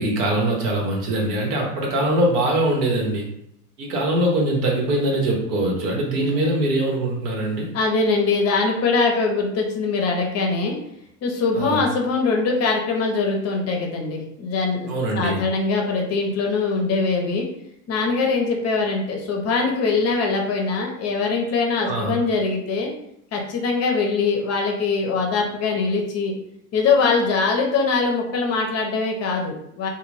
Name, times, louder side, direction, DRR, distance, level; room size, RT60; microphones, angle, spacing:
voice 1, 0.0-3.3 3.8-7.7 11.5-11.8 14.9-15.4 21.8-22.2, right 1 dB, 80° right, -1 dB, 1.1 m, -22 dB
voice 2, 6.2-6.6 7.7-10.8 11.2-14.8 15.1-17.5 17.9-22.9 23.3-26.3 26.7-29.9, left 4 dB, 35° left, 1 dB, 0.6 m, -22 dB
2.5 x 2.3 x 3.2 m, 0.75 s
hypercardioid pair, 105°, 46 cm